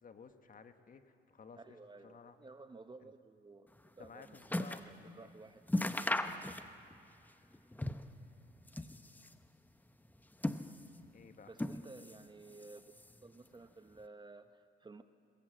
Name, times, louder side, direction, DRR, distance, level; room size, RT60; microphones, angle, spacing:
voice 1, 0.0-1.8 2.0-2.4 3.0-3.1 4.0-5.3 11.1-11.5, left 5 dB, 45° left, 8 dB, 1.5 m, -55 dB
voice 2, 1.6-5.6 11.5-12.8 13.2-15.0, right 3 dB, 20° right, 10 dB, 0.9 m, -54 dB
sound 1, 3.8-4.9 5.3-5.4 5.7-7.0 7.3-8.2 8.6-9.4 10.1-11.1 11.5-12.3 12.5-13.3 14.0-14.1, left 1 dB, 10° left, 0.9 m, -38 dB
21.5 x 21.5 x 7.8 m, 2.5 s
cardioid pair, 90°, 20 cm